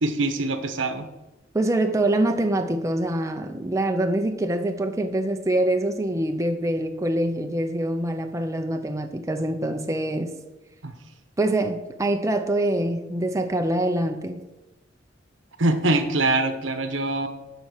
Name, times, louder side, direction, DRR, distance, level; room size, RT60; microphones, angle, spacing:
voice 1, 0.0-1.1 10.8-10.9 15.6-17.3, right 2 dB, 75° right, 8 dB, 1.0 m, -23 dB
voice 2, 1.5-10.3 11.4-14.4, right 1 dB, 15° right, 5 dB, 0.5 m, -25 dB
12.5 x 4.2 x 6.4 m, 1.0 s
head